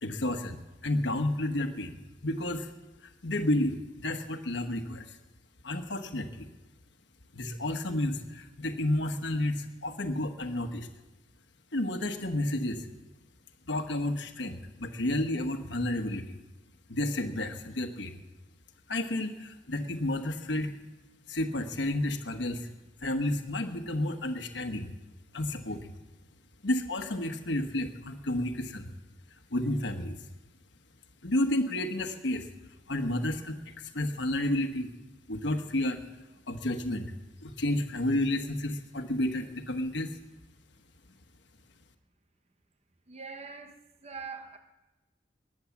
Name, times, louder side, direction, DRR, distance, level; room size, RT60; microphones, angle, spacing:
voice 1, 0.0-1.9 2.2-2.7 3.2-5.2 5.6-6.5 7.3-10.9 11.7-12.9 13.7-16.4 16.9-18.2 18.9-20.8 21.3-22.7 23.0-24.9 25.3-25.9 26.6-28.9 29.5-30.2 31.2-32.5 32.9-34.9 35.3-36.0 36.5-37.1 37.4-40.1, left 1 dB, 80° left, 1.2 m, -31 dB
voice 2, 43.1-44.6, right 5 dB, 35° right, 1.0 m, -43 dB
20.5 x 8.7 x 7.2 m
head